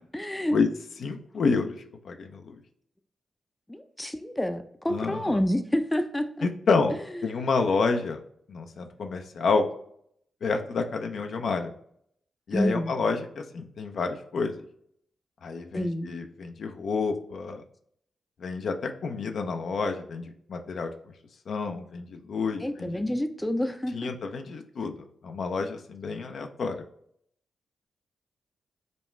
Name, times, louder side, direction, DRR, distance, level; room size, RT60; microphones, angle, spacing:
voice 1, 0.1-0.6 3.7-6.5 7.2-7.4 12.5-12.9 15.7-16.1 22.6-24.1, left 1 dB, 15° left, 8 dB, 0.5 m, -28 dB
voice 2, 1.0-1.8 2.0-2.6 4.9-5.4 6.4-8.2 8.5-9.7 10.4-11.7 12.5-14.6 15.4-17.6 18.4-20.2 20.5-20.9 21.5-23.0 23.9-24.9 25.2-26.7, left 4 dB, 65° left, 5 dB, 0.5 m, -29 dB
5.2 x 2.3 x 3.1 m, 0.67 s
supercardioid pair, 45°, 0 cm